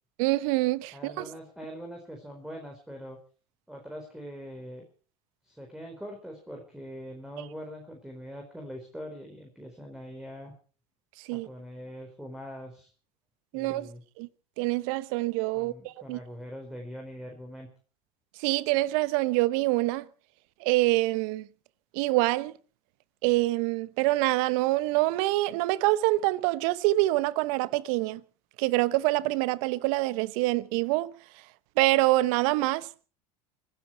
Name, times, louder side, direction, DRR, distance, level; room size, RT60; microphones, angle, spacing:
voice 1, 0.2-1.2 11.3-11.5 13.5-13.9 14.2-14.3 14.6-16.2 18.4-20.0 20.6-21.5 21.9-22.5 23.2-28.2 28.6-31.1 31.8-32.9, right 19 dB, 70° right, 0.9 m, -25 dB
voice 2, 0.9-3.2 3.7-4.8 5.4-10.5 11.3-12.9 13.5-14.0 15.5-17.7, equal, 5° right, 4.4 m, -42 dB
24.5 x 13.0 x 4.6 m
hypercardioid pair, 85°, 19 cm